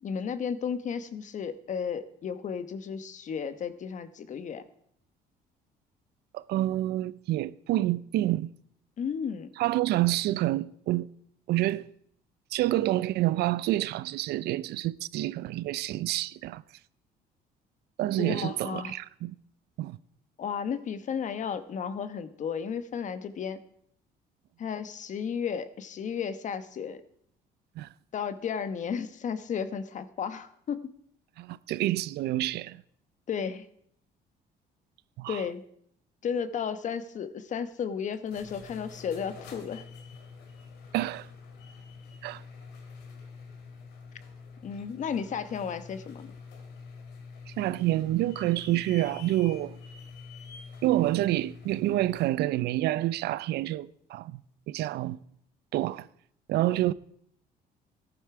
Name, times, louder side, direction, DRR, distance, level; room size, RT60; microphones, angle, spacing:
voice 1, 0.0-4.6 9.0-9.5 18.2-19.0 20.4-23.6 24.6-27.0 28.1-30.9 33.3-33.6 35.3-35.6 36.2-39.8 44.6-46.3, left 7 dB, 45° left, 1.1 m, -33 dB
voice 2, 6.3-8.5 9.6-11.1 11.5-11.8 12.5-16.6 18.0-19.3 19.8-20.0 27.8-27.9 31.4-32.8 35.2-35.4 40.9-41.3 42.2-42.4 47.5-49.8 50.8-54.4 54.7-55.2 55.7-56.1 56.5-56.9, right 15 dB, 75° right, 0.5 m, -28 dB
sound 1, 38.1-52.4, left 5 dB, 85° left, 2.6 m, -47 dB
14.0 x 11.0 x 4.8 m
cardioid pair, 110°, 17 cm